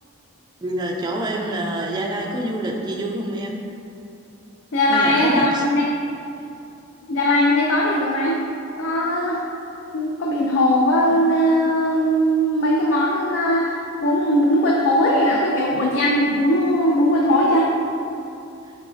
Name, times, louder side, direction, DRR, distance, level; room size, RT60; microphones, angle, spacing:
voice 1, 0.6-3.6 4.9-5.7 11.1-11.2, right 1 dB, 20° right, 0 dB, 0.3 m, -26 dB
voice 2, 4.7-5.9 7.1-8.4 8.8-9.4 9.9-13.8 14.0-17.7, equal, 65° left, -3 dB, 0.4 m, -19 dB
4.9 x 4.0 x 2.5 m, 2.7 s
head